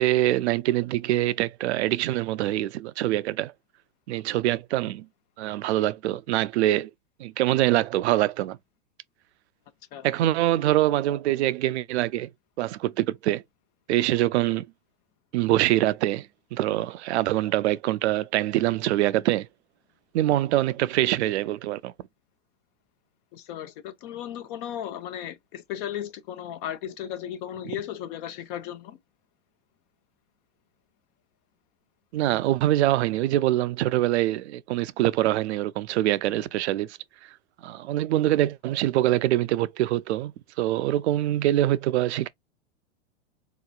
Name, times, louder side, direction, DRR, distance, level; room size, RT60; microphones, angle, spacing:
voice 1, 0.0-3.5 4.1-5.1 5.4-6.9 7.2-8.6 10.0-12.3 12.6-13.4 13.9-14.7 15.3-19.5 20.1-21.9 32.1-37.0 37.6-40.3 40.6-42.3, right 15 dB, 70° right, 0.5 m, -24 dB
voice 2, 23.3-29.0 36.3-36.4, left 10 dB, 50° left, 0.8 m, -35 dB
4.1 x 2.8 x 2.3 m
hypercardioid pair, 120°, 35 cm